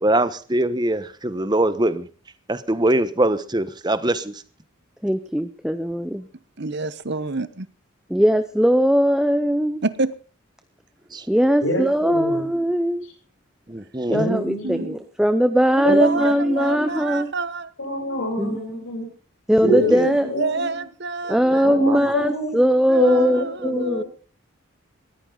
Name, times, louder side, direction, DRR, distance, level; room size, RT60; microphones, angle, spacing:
voice 1, 0.0-2.1 2.5-4.4 11.1-11.3 13.7-14.2 19.6-20.1 21.5-21.6 21.9-22.0, right 1 dB, 20° right, 1.0 m, -22 dB
voice 2, 5.0-6.3 8.1-9.8 11.3-13.0 14.1-17.3 18.4-18.8 19.5-20.3 21.3-24.0, equal, 5° right, 0.7 m, -20 dB
voice 3, 6.6-7.7 9.8-10.1 14.6-14.9 15.8-17.7 19.6-21.7 22.0-22.1 22.9-24.0, right 3 dB, 55° right, 1.0 m, -28 dB
voice 4, 11.6-12.4 14.1-15.0 15.8-17.0 17.8-19.1 19.6-20.8 21.6-22.5 23.0-24.1, equal, 80° left, 7.8 m, -26 dB
19.5 x 14.5 x 3.9 m
head